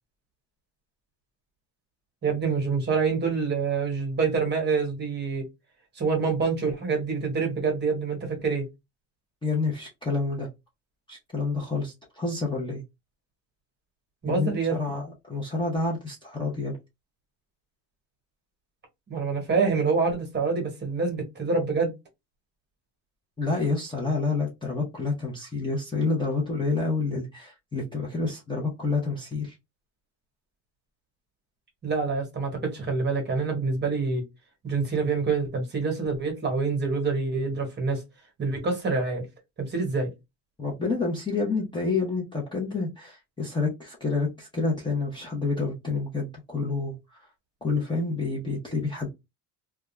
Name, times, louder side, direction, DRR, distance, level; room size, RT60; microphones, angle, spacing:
voice 1, 2.2-5.4 5.9-8.7 14.2-15.0 19.1-21.9 31.8-34.2 34.6-38.0 38.4-39.2 39.6-40.1, right 4 dB, 30° right, 1.0 m, -26 dB
voice 2, 9.4-10.5 11.1-12.8 14.3-16.8 23.4-29.5 40.6-46.9 47.6-49.1, left 3 dB, 15° left, 0.6 m, -28 dB
2.4 x 2.3 x 3.0 m
cardioid pair, 165°, 37 cm